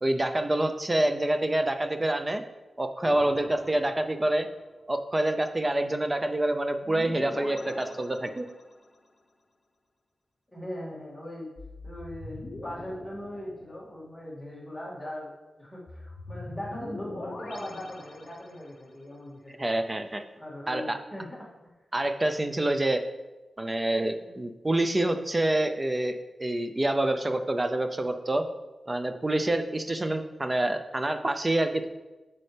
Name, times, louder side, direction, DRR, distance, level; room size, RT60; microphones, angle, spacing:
voice 1, 0.0-2.4 2.8-4.5 4.9-8.5 19.6-20.2 20.7-21.0 21.9-23.0 23.6-28.4 28.9-31.9, right 1 dB, 20° right, 7 dB, 0.5 m, -27 dB
sound 1, 3.0-4.6 6.8-8.9 11.6-14.1 15.9-18.8, left 2 dB, 40° left, 0.8 m, -43 dB
voice 2, 10.5-11.5 11.8-15.3 15.6-19.6 20.3-21.5 24.2-24.4, left 1 dB, ahead, -7 dB, 2.3 m, -40 dB
8.4 x 5.6 x 3.3 m, 1.1 s
wide cardioid pair, 115°, 0 cm